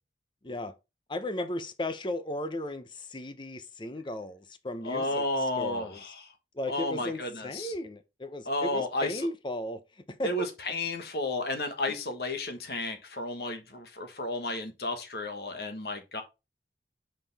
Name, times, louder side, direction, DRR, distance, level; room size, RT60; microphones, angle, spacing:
voice 1, 0.4-0.7 1.1-6.0 6.5-10.5, left 1 dB, 25° left, 0.7 m, -36 dB
voice 2, 4.8-6.2 6.7-7.7 8.5-9.2 10.2-16.2, left 2 dB, 60° left, 1.4 m, -32 dB
5.5 x 5.3 x 4.1 m
head